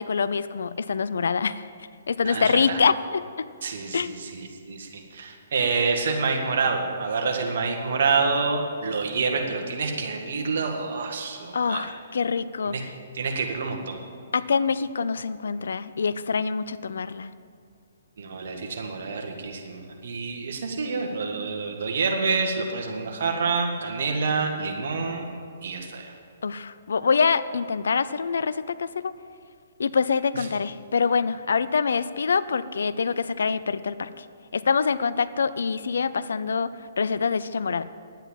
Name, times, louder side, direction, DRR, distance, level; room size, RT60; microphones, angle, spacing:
voice 1, 0.0-1.6 2.1-3.5 3.9-4.2 11.5-12.7 14.3-17.3 26.4-29.1 29.8-34.2 34.5-36.7 37.0-37.8, left 5 dB, 70° left, 15 dB, 0.5 m, -25 dB
voice 2, 2.2-2.8 3.6-11.9 12.6-12.8 13.1-14.0 18.2-25.4 25.6-26.1 30.3-30.5, right 4 dB, 60° right, 2 dB, 1.8 m, -27 dB
10.5 x 9.1 x 7.4 m, 2.3 s
figure-of-eight pair, 130°, 0 cm